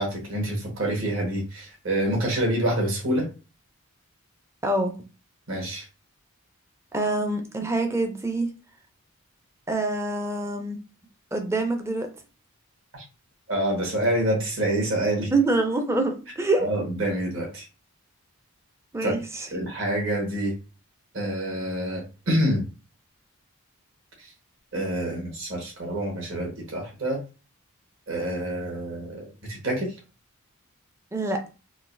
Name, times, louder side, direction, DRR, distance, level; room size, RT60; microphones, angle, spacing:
voice 1, 0.0-3.3 5.5-5.8 12.9-13.0 13.5-15.3 16.6-17.6 19.0-19.1 19.5-20.5 21.1-22.6 24.7-27.2 28.1-29.9, right 1 dB, 60° right, -1 dB, 1.4 m, -27 dB
voice 2, 6.9-8.5 9.7-10.8 11.3-12.1 15.3-16.7 18.9-19.5 31.1-31.4, right 2 dB, 10° right, 5 dB, 0.5 m, -25 dB
3.8 x 2.5 x 2.6 m, 0.32 s
head